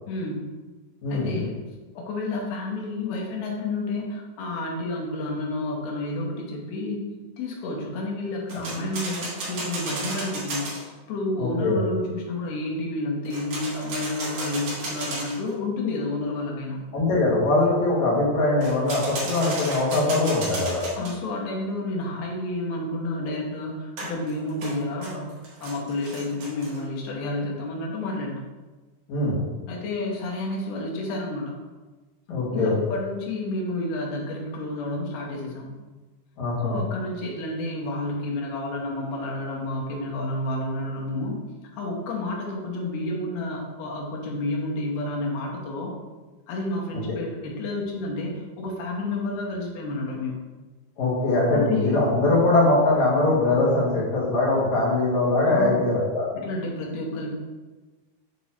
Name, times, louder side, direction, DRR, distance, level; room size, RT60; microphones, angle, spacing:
voice 1, 0.1-0.5 1.1-1.6 2.0-7.0 7.4-16.9 21.0-28.5 29.7-31.6 32.5-35.7 36.6-41.4 41.7-45.9 46.5-50.4 51.5-52.0 55.5-55.9 56.3-57.4, left 2 dB, 80° left, -2 dB, 3.0 m, -30 dB
voice 2, 1.0-1.4 8.5-8.6 11.4-11.8 16.9-20.8 29.1-29.5 32.3-32.8 36.4-36.8 46.9-47.0 51.0-56.2, left 2 dB, 55° left, -7 dB, 2.4 m, -22 dB
sound 1, 8.5-10.8 13.2-15.5 18.6-21.1 24.0-26.8, right 2 dB, 55° right, 2.6 m, -34 dB
8.3 x 3.0 x 4.3 m, 1.3 s
omnidirectional pair, 4.6 m